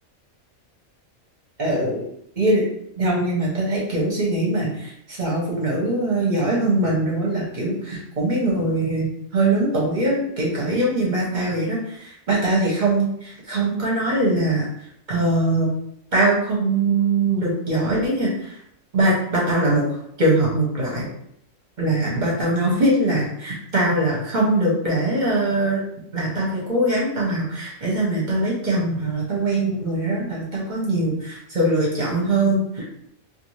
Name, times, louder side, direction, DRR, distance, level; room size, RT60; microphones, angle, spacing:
voice 1, 1.6-2.0 2.4-2.6 3.0-14.7 15.1-15.7 16.1-18.5 18.9-19.8 20.2-21.1 21.8-25.8 26.1-32.8, right 2 dB, 40° right, -4 dB, 0.8 m, -22 dB
2.5 x 2.4 x 3.0 m, 0.72 s
omnidirectional pair, 1.4 m